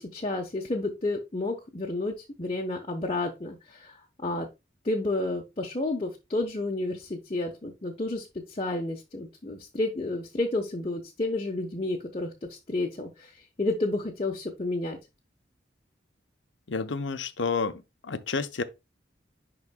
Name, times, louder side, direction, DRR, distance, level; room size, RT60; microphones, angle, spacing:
voice 1, 0.0-4.5 4.8-15.0, left 2 dB, 30° left, 0.9 m, -31 dB
voice 2, 16.7-18.6, left 4 dB, 80° left, 0.8 m, -30 dB
11.0 x 3.9 x 2.2 m
head